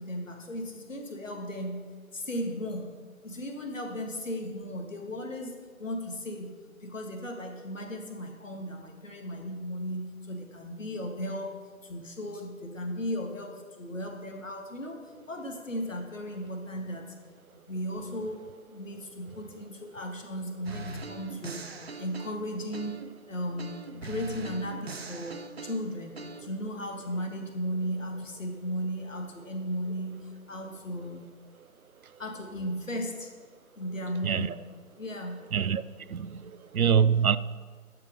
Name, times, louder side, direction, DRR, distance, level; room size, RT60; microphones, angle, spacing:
voice 1, 0.0-1.8 2.1-3.0 3.2-5.5 5.8-6.5 6.8-11.6 11.8-15.0 15.3-17.0 17.5-18.4 18.7-21.6 22.0-23.0 23.3-25.4 25.6-26.1 26.4-31.2 32.2-33.3 33.8-34.5 35.0-35.4, equal, 65° left, 1.7 m, -36 dB
sound 1, 20.6-23.2 23.6-26.4, right 3 dB, 50° right, 0.6 m, -41 dB
voice 2, 35.5-35.8 36.1-37.4, right 7 dB, 90° right, 0.5 m, -25 dB
11.0 x 5.1 x 5.2 m
figure-of-eight pair, 150°, 42 cm